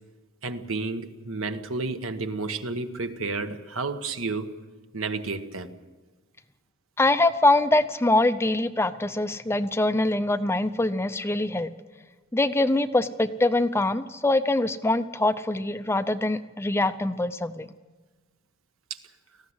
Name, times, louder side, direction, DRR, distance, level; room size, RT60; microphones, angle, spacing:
voice 1, 0.4-4.5 4.9-5.7, right 3 dB, 70° right, 1.3 m, -31 dB
voice 2, 7.0-11.7 12.3-17.7, left 2 dB, 10° left, 0.6 m, -23 dB
18.5 x 15.0 x 9.6 m
head